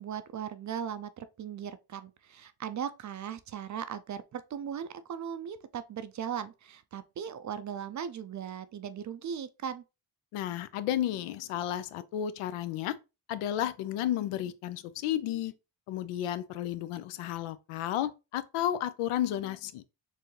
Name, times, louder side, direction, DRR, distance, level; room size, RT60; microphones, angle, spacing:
voice 1, 0.0-9.8, right 8 dB, 40° right, 0.4 m, -38 dB
voice 2, 10.3-13.0 13.3-15.5 15.9-19.8, left 11 dB, 80° left, 0.6 m, -32 dB
4.6 x 2.6 x 3.2 m
cardioid pair, 75°, 50 cm